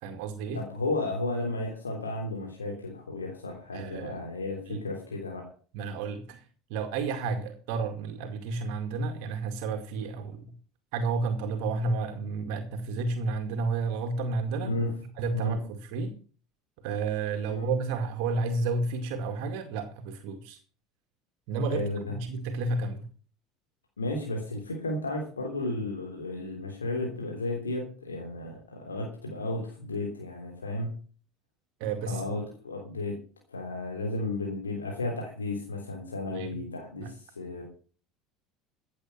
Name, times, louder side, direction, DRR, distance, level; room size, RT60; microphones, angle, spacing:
voice 1, 0.0-0.6 3.7-4.2 4.7-4.8 5.7-6.4 6.7-10.5 10.9-14.7 15.2-16.1 16.8-20.6 21.5-21.8 22.1-23.1 31.8-32.3 36.3-36.5 37.0-37.1, right 3 dB, 65° right, 6 dB, 2.2 m, -31 dB
voice 2, 0.5-5.5 14.6-14.9 15.3-15.6 17.5-17.7 21.7-22.0 24.0-30.9 32.0-33.2 33.5-37.6, left 2 dB, 85° left, 0 dB, 3.4 m, -33 dB
15.5 x 8.5 x 6.0 m, 0.40 s
figure-of-eight pair, 65°, 0 cm